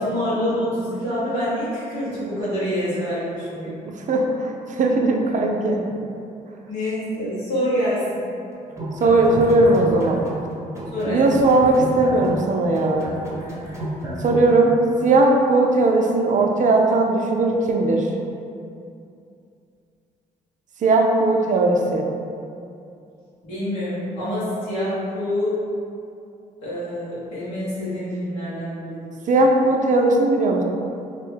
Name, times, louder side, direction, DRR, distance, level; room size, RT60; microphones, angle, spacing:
voice 1, 0.0-3.8 6.7-8.2 10.9-11.2 23.4-25.6 26.6-29.0, equal, 85° left, -12 dB, 1.3 m, -26 dB
voice 2, 3.8-5.8 9.0-10.2 11.0-13.1 14.2-14.7 15.0-18.1 20.8-22.1 29.3-30.6, right 2 dB, 50° right, 1 dB, 0.4 m, -18 dB
sound 1, 8.7-10.5 10.7-14.5, right 1 dB, 15° right, 0.8 m, -31 dB
2.7 x 2.1 x 3.3 m, 2.6 s
supercardioid pair, 55°, 17 cm